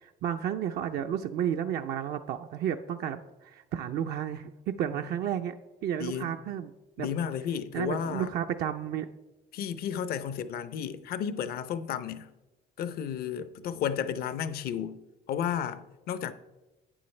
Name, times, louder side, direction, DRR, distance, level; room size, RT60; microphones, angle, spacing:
voice 1, 0.0-4.5 4.8-5.5 5.8-6.7 7.0-7.1 7.7-9.1, right 9 dB, 70° right, 0.5 m, -32 dB
voice 2, 6.0-6.3 7.0-8.3 9.5-12.3 12.8-15.0 15.3-16.3, left 8 dB, 65° left, 0.6 m, -33 dB
11.0 x 8.6 x 3.2 m
cardioid pair, 110°, 17 cm